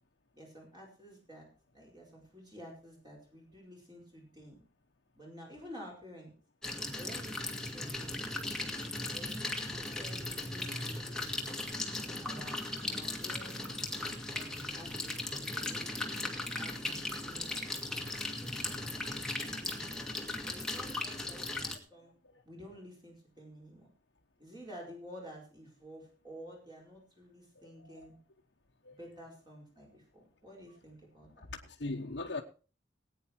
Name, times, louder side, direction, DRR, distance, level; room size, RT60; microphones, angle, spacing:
voice 1, 0.3-1.5 1.7-4.6 5.2-6.3 7.0-8.4 9.1-11.3 12.0-13.7 14.3-15.9 16.6-17.9 18.4-19.8 20.5-22.1 22.4-23.9 24.4-28.1 28.9-31.5, equal, 25° right, 4.8 m, -51 dB
sound 1, 6.6-21.8, left 2 dB, 5° left, 1.8 m, -38 dB
voice 2, 27.5-28.1 28.8-29.0 31.4-32.4, left 2 dB, 70° left, 1.2 m, -40 dB
18.5 x 9.4 x 4.6 m
head